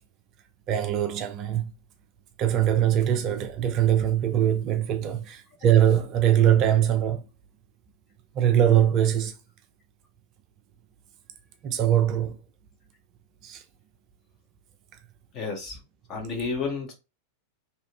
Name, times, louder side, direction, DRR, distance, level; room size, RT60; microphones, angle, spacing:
voice 1, 0.7-1.7 2.4-7.3 8.3-9.3 11.6-12.4 13.4-13.6, right 10 dB, 35° right, 0.4 m, -22 dB
voice 2, 15.3-15.8 16.1-16.9, left 4 dB, 35° left, 1.4 m, -31 dB
3.0 x 2.9 x 3.0 m
figure-of-eight pair, 90°, 0 cm